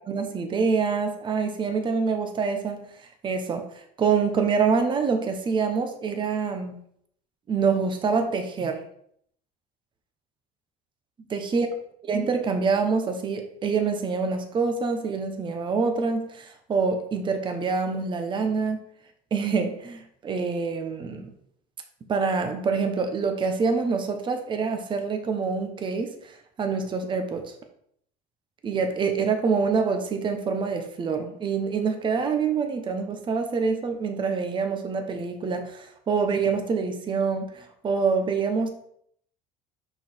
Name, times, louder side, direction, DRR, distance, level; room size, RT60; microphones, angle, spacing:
voice 1, 0.1-2.9 3.2-3.6 4.0-6.8 7.5-8.8 11.3-11.7 12.0-18.8 19.3-21.3 22.1-27.4 28.6-38.7, right 5 dB, 30° right, 5 dB, 1.0 m, -26 dB
5.7 x 4.7 x 4.4 m, 0.66 s
cardioid pair, 120°, 17 cm